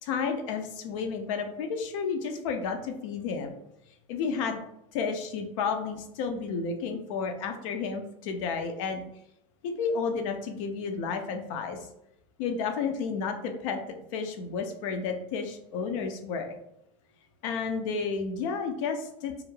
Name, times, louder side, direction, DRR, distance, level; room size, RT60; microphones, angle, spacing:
voice 1, 0.0-3.6 4.1-4.6 4.9-9.0 9.6-11.8 12.4-13.8 14.1-16.6 17.4-19.3, left 5 dB, 75° left, 6 dB, 0.5 m, -31 dB
2.4 x 2.0 x 3.1 m, 0.81 s
hypercardioid pair, 95°, 17 cm